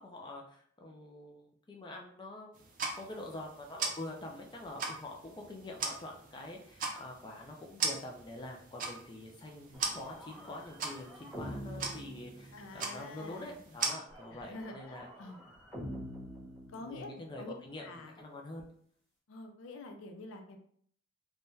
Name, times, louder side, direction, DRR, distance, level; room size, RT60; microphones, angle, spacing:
voice 1, 0.0-2.6 3.0-15.1 16.8-18.6, left 2 dB, 20° left, 0 dB, 0.4 m, -46 dB
sound 1, 2.5-13.9, right 4 dB, 40° right, 0.5 m, -40 dB
sound 2, 9.7-13.0 14.1-17.4, equal, 5° left, 1.1 m, -46 dB
voice 2, 12.5-13.6 14.3-15.4 16.7-17.1 17.4-17.5 17.8-18.2 19.3-20.6, left 2 dB, 80° left, 5 dB, 0.5 m, -47 dB
3.4 x 2.2 x 2.6 m, 0.62 s
head